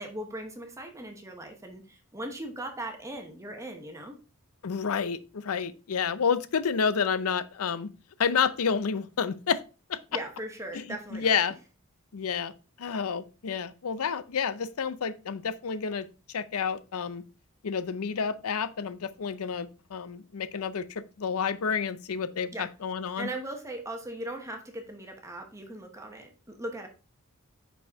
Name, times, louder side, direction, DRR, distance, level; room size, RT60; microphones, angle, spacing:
voice 1, 0.0-4.2 10.1-11.4 22.5-22.7 23.2-26.9, right 1 dB, 15° right, 0.9 m, -39 dB
voice 2, 4.6-7.9 8.2-9.6 9.9-10.0 10.7-10.8 11.1-11.5 12.1-12.5 12.8-17.2 17.6-23.3, left 6 dB, 75° left, 0.5 m, -29 dB
5.5 x 5.2 x 3.5 m
head